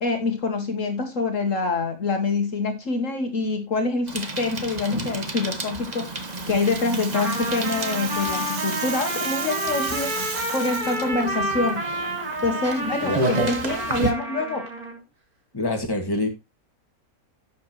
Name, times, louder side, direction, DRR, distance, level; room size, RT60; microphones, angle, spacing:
voice 1, 0.0-11.8 12.4-14.7, left 3 dB, 60° left, 1.6 m, -26 dB
Bicycle, 4.1-14.1, right 2 dB, 30° right, 1.4 m, -32 dB
Rattle (instrument), 5.9-11.1, right 5 dB, 55° right, 1.7 m, -35 dB
Trumpet, 7.1-15.0, right 1 dB, 80° right, 3.0 m, -29 dB
voice 2, 15.5-16.3, left 2 dB, 15° left, 1.9 m, -25 dB
11.0 x 7.6 x 3.0 m
omnidirectional pair, 1.6 m